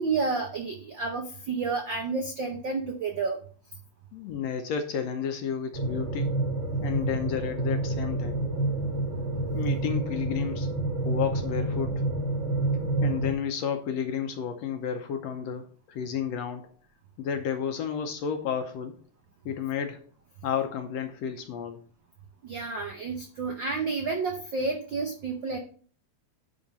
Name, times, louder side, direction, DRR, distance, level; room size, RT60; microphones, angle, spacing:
voice 1, 0.0-3.4 22.4-25.6, right 4 dB, 70° right, 3 dB, 1.1 m, -30 dB
voice 2, 4.1-6.3 6.8-8.4 9.5-10.7 11.0-12.1 13.0-16.7 17.2-19.0 19.4-20.0 20.4-21.8, left 8 dB, 70° left, 6 dB, 1.7 m, -31 dB
sound 1, 5.7-13.3, right 2 dB, 35° right, 1.3 m, -28 dB
10.0 x 3.8 x 5.3 m, 0.44 s
omnidirectional pair, 3.4 m